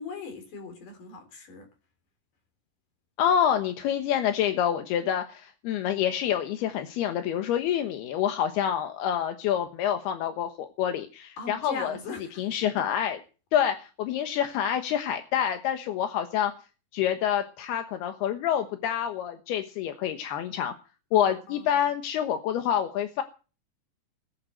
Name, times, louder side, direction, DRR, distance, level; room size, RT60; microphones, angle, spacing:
voice 1, 0.0-1.7 11.4-12.4 21.1-21.7, left 4 dB, 45° left, 4.8 m, -39 dB
voice 2, 3.2-12.0 12.4-13.2 13.5-16.5 16.9-20.7 21.1-23.2, left 9 dB, 70° left, 2.7 m, -27 dB
17.5 x 9.6 x 7.8 m
omnidirectional pair, 5.8 m